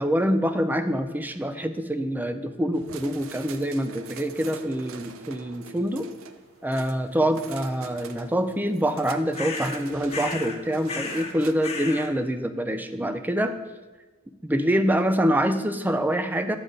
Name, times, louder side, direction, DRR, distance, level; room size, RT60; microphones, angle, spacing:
voice 1, 0.0-6.1 6.6-13.5 14.4-16.6, equal, 10° right, 9 dB, 0.4 m, -25 dB
sound 1, 2.7-11.5, right 5 dB, 70° right, 0.5 m, -43 dB
sound 2, 9.3-9.8 10.1-10.6 10.9-11.4 11.6-12.1, left 4 dB, 30° left, 0.7 m, -33 dB
7.8 x 6.7 x 3.7 m, 1.3 s
head